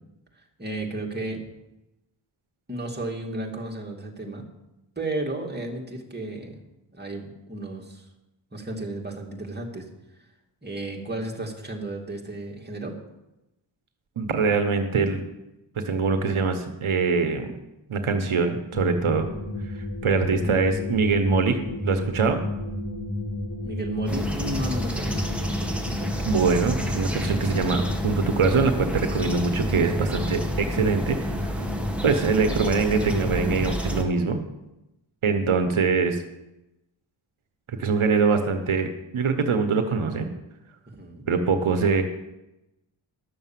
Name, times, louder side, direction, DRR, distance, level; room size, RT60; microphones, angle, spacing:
voice 1, 0.6-1.4 2.7-4.4 5.0-6.6 6.9-8.0 8.5-9.9 10.6-12.9 23.6-25.2 40.9-41.3, right 1 dB, 20° right, -1 dB, 2.5 m, -33 dB
voice 2, 14.2-15.2 15.8-17.5 17.9-19.3 19.7-21.6 21.8-22.4 26.2-31.5 32.0-34.4 35.2-36.2 37.7-40.3 41.3-42.0, right 4 dB, 85° right, 7 dB, 1.1 m, -23 dB
sound 1, 18.7-33.7, left 1 dB, 40° left, 2.0 m, -33 dB
sound 2, 24.1-34.0, equal, ahead, 1.8 m, -30 dB
12.0 x 6.8 x 7.5 m, 0.94 s
wide cardioid pair, 60°, 48 cm